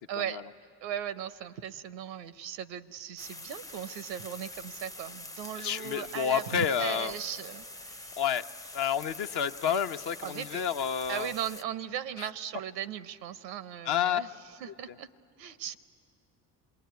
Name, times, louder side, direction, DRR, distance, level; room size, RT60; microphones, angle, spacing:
voice 1, 0.1-0.4 0.8-8.2 10.2-10.6 11.1-14.3 14.6-15.1 15.4-15.8, right 10 dB, 90° right, 15 dB, 0.8 m, -38 dB
sound 1, 3.2-11.6, left 1 dB, 5° left, 0.6 m, -45 dB
voice 2, 5.6-7.1 8.2-8.4 8.7-11.3 12.2-12.3 13.8-14.2, left 8 dB, 55° left, 8 dB, 0.9 m, -29 dB
27.0 x 20.5 x 9.4 m, 2.4 s
hypercardioid pair, 60°, 49 cm